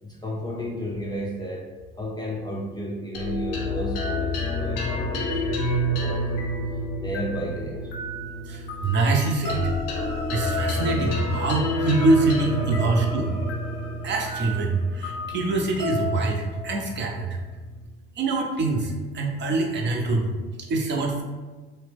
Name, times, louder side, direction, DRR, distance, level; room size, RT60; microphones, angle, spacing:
voice 1, 0.0-1.7 2.0-6.5 7.0-7.9 12.7-12.8, equal, 15° left, -3 dB, 0.4 m, -33 dB
sound 1, 3.1-17.8, left 1 dB, 75° left, 0.6 m, -29 dB
voice 2, 8.4-9.7 10.3-13.3 14.0-17.4 18.2-21.2, right 3 dB, 40° right, 0 dB, 0.7 m, -24 dB
2.8 x 2.1 x 3.3 m, 1.3 s
hypercardioid pair, 60°, 30 cm